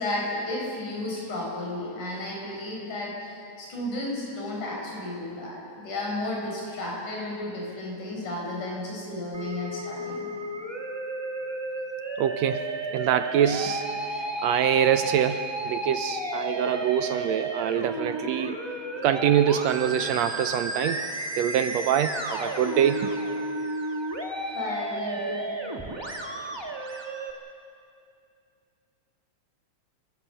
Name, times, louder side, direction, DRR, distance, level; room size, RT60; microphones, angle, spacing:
voice 1, 0.0-10.3 24.5-25.5, left 1 dB, 85° left, -2 dB, 6.4 m, -33 dB
Musical instrument, 9.3-27.3, right 2 dB, 25° right, 0.5 m, -32 dB
voice 2, 12.2-18.6 19.0-21.1 21.4-23.1, right 9 dB, 75° right, 10 dB, 1.7 m, -25 dB
29.5 x 15.0 x 6.9 m, 2.4 s
omnidirectional pair, 3.5 m